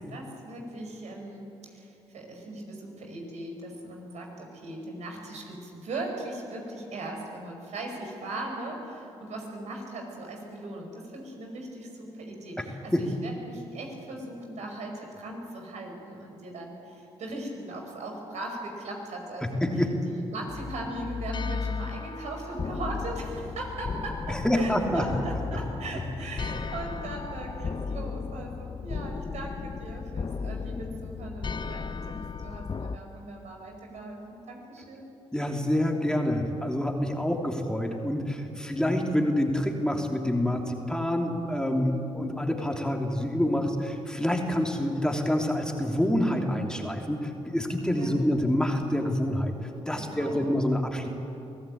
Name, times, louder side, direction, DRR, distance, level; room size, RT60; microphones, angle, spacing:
voice 1, 0.0-19.6 20.1-35.1 41.7-42.1 47.9-48.2 49.9-50.5, right 2 dB, 70° right, 2 dB, 5.2 m, -39 dB
voice 2, 19.6-20.0 24.3-25.0 35.3-51.1, left 1 dB, 5° left, 2 dB, 3.1 m, -27 dB
sound 1, 20.5-33.0, left 5 dB, 40° left, 0.9 m, -35 dB
24.0 x 16.0 x 8.7 m, 2.8 s
hypercardioid pair, 50°, 12 cm